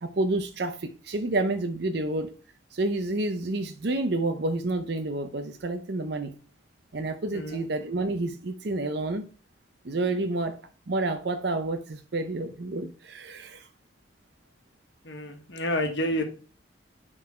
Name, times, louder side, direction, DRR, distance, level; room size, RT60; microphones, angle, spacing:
voice 1, 0.0-2.3 2.7-6.3 6.9-9.2 9.8-10.6 10.9-13.7, right 2 dB, 55° right, 0.6 m, -29 dB
voice 2, 15.0-16.2, left 1 dB, 65° left, 1.5 m, -29 dB
9.7 x 3.9 x 4.3 m
head